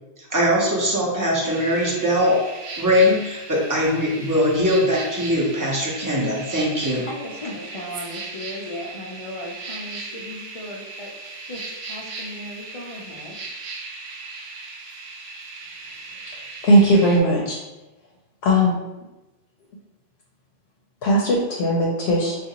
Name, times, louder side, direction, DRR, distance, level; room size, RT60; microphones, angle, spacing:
voice 1, 0.3-2.4 2.8-7.0, equal, 20° right, -4 dB, 0.7 m, -21 dB
sound 1, 1.5-17.2, right 3 dB, 60° right, 0.7 m, -37 dB
voice 2, 6.0-6.4 6.8-13.4, left 1 dB, 40° left, -2 dB, 0.5 m, -36 dB
voice 3, 16.6-17.6 18.4-18.8 21.0-22.3, equal, 75° left, -2 dB, 0.8 m, -18 dB
3.7 x 2.4 x 2.8 m, 1.0 s
omnidirectional pair, 1.0 m